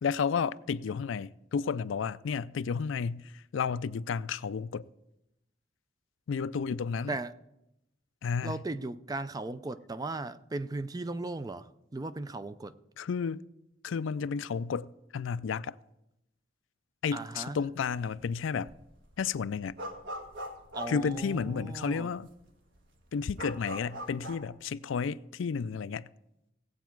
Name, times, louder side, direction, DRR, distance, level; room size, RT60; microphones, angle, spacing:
voice 1, 0.0-4.9 6.3-7.2 8.2-8.6 13.0-13.4 13.8-15.8 17.0-18.7 19.2-19.8 20.9-22.3 23.1-26.1, left 6 dB, 75° left, 0.4 m, -32 dB
voice 2, 8.4-12.7 17.1-17.6 20.7-22.1, right 2 dB, 20° right, 0.4 m, -37 dB
sound 1, 17.9-18.3 18.6-21.8 22.3-22.4 22.6-24.5, equal, 65° right, 1.7 m, -41 dB
17.0 x 8.2 x 4.6 m
head